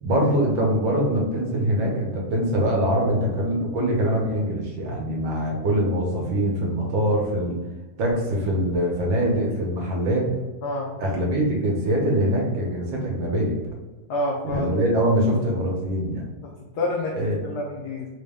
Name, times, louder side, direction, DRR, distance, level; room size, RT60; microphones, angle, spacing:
voice 1, 0.0-7.6 8.0-10.3 11.0-13.6 14.4-16.3 17.1-17.4, equal, 70° right, -1 dB, 1.4 m, -23 dB
voice 2, 14.1-14.7 16.4-17.2 17.4-18.1, left 1 dB, 85° left, -3 dB, 0.8 m, -28 dB
4.0 x 2.1 x 3.4 m, 1.2 s
omnidirectional pair, 2.4 m